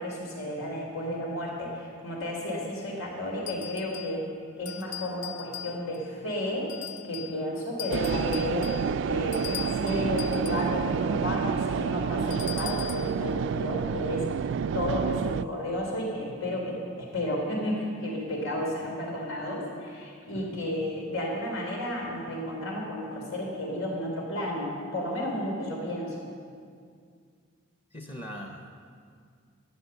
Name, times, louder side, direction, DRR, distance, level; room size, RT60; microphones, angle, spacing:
voice 1, 0.0-4.3 4.6-6.7 7.0-8.8 9.1-14.3 14.7-26.3, equal, 85° left, -2 dB, 3.5 m, -32 dB
sound 1, 3.5-4.2 4.6-6.1 6.7-7.4 7.8-10.7 12.3-13.2, left 11 dB, 60° left, 0.8 m, -40 dB
sound 2, 7.9-15.4, right 6 dB, 60° right, 0.3 m, -29 dB
voice 2, 27.9-28.9, equal, 30° left, 2 dB, 1.0 m, -41 dB
13.5 x 11.0 x 6.9 m, 2.2 s
head